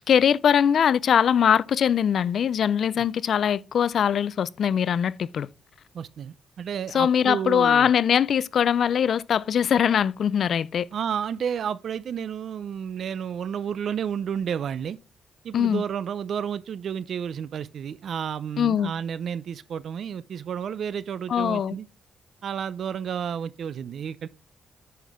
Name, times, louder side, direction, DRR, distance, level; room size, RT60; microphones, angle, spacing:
voice 1, 0.1-5.5 6.9-10.9 15.5-15.8 18.6-18.9 21.3-21.8, left 8 dB, 65° left, 0.4 m, -22 dB
voice 2, 5.9-7.9 10.9-15.0 15.4-21.9 22.4-24.3, right 8 dB, 65° right, 0.4 m, -31 dB
9.2 x 5.8 x 3.5 m
cardioid pair, 90°, 0 cm